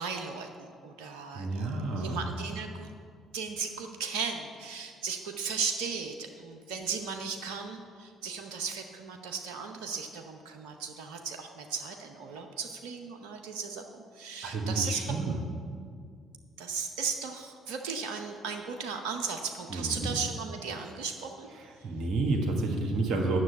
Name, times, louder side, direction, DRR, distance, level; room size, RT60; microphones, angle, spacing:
voice 1, 0.0-1.7 2.0-2.9 3.3-15.2 16.6-21.5 21.8-21.9, right 5 dB, 75° right, 4 dB, 0.7 m, -36 dB
voice 2, 1.3-2.2 14.4-15.4 19.7-20.1 21.6-23.4, right 3 dB, 55° right, 0 dB, 1.6 m, -30 dB
9.5 x 6.8 x 8.2 m, 2.1 s
hypercardioid pair, 50°, 0 cm